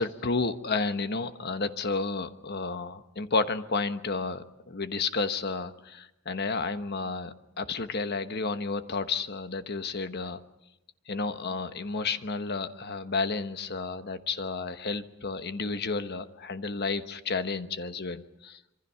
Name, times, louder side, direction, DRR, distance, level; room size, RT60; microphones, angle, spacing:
voice 1, 0.0-10.4 11.1-18.6, left 4 dB, 50° left, 10 dB, 1.2 m, -31 dB
26.5 x 24.0 x 5.7 m, 0.87 s
head